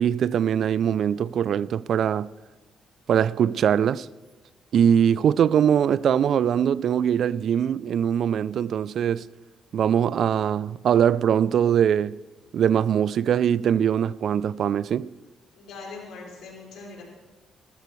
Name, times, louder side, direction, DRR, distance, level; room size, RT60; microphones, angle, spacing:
voice 1, 0.0-2.3 3.1-4.1 4.7-9.3 9.7-12.2 12.5-15.1, right 8 dB, 65° right, 0.3 m, -22 dB
voice 2, 15.6-17.0, left 4 dB, 85° left, 4.9 m, -41 dB
20.0 x 13.5 x 3.2 m
cardioid pair, 90°, 0 cm